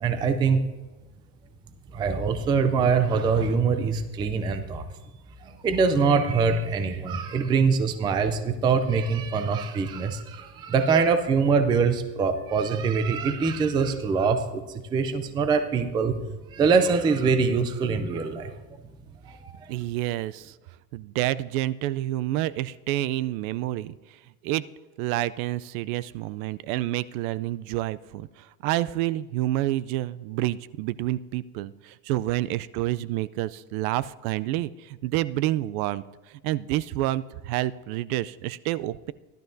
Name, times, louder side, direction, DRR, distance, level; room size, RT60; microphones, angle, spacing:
voice 1, 0.0-0.6 1.9-4.8 5.4-16.2 16.5-18.5 19.2-19.7, right 5 dB, 10° right, 9 dB, 0.3 m, -24 dB
voice 2, 19.7-20.5 20.9-24.0 24.4-24.6 25.0-39.1, right 15 dB, 65° right, 17 dB, 0.5 m, -28 dB
16.5 x 12.0 x 2.6 m, 1.2 s
supercardioid pair, 125°, 48 cm